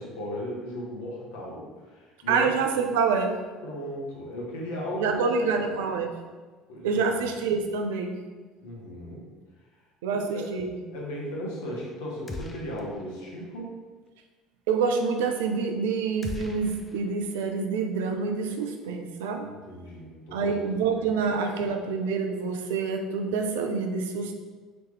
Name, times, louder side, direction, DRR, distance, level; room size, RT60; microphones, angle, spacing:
voice 1, 0.0-2.5 3.6-5.3 5.6-5.7 6.7-7.2 8.6-9.2 10.3-10.4 10.9-13.8 19.4-20.7 21.0-21.2, equal, 70° left, -3 dB, 0.9 m, -36 dB
voice 2, 2.3-3.4 5.0-6.1 6.8-8.2 10.0-10.7 14.7-19.5 20.3-24.3, right 5 dB, 70° right, 4 dB, 0.4 m, -27 dB
sound 1, 12.3-13.2 13.4-13.6 16.2-17.5, left 2 dB, 20° left, 0.5 m, -40 dB
3.0 x 2.9 x 3.5 m, 1.3 s
figure-of-eight pair, 60°, 0 cm